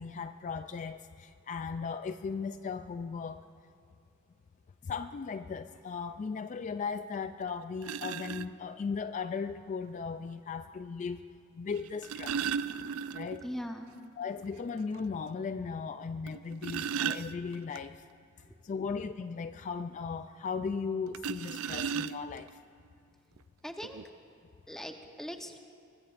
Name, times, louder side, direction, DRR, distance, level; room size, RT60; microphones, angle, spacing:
voice 1, 0.0-3.5 4.8-11.3 11.5-12.4 13.1-13.4 14.2-18.0 18.6-22.6, left 5 dB, 35° left, 10 dB, 0.3 m, -37 dB
sound 1, 7.1-7.2 7.8-8.5 9.9-10.0 11.8-13.5 13.8-13.9 14.3-14.4 14.9-15.0 16.3-17.8 21.1-22.5 23.4-23.5 23.8-24.0, right 7 dB, 80° right, 0.4 m, -35 dB
voice 2, 13.4-14.0 18.4-18.6 23.6-24.0 24.7-25.6, equal, ahead, 4 dB, 0.9 m, -41 dB
23.5 x 21.0 x 2.5 m, 2.6 s
head